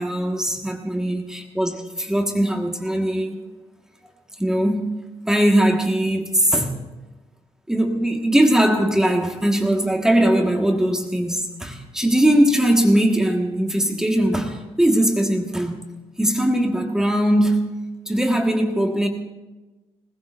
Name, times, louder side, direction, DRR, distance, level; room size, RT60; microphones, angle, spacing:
voice 1, 0.0-3.4 4.4-5.0 5.3-6.7 7.7-15.9 16.2-17.6 18.1-19.1, right 1 dB, 5° right, 1.7 m, -20 dB
21.5 x 20.0 x 2.6 m
cardioid pair, 125°, 12 cm